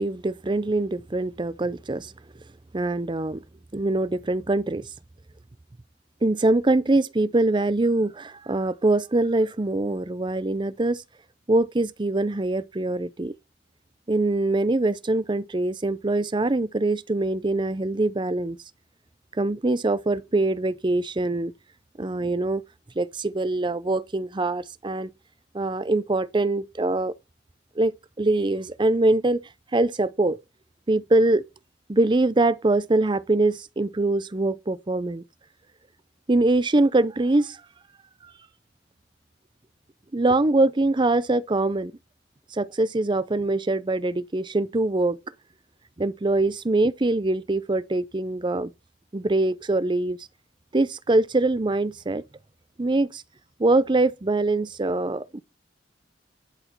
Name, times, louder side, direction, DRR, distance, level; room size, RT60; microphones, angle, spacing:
voice 1, 0.0-2.1 2.7-3.4 3.7-4.9 6.2-11.0 11.5-13.3 14.1-18.6 19.4-21.5 22.0-22.6 23.0-25.1 25.5-27.1 27.8-29.4 29.7-30.4 30.9-31.4 31.9-35.2 36.3-37.6 40.1-41.9 42.5-45.2 46.0-48.7 49.1-50.2 50.7-52.2 52.8-53.2 53.6-55.4, right 2 dB, 25° right, 0.6 m, -23 dB
11.5 x 6.1 x 4.5 m
head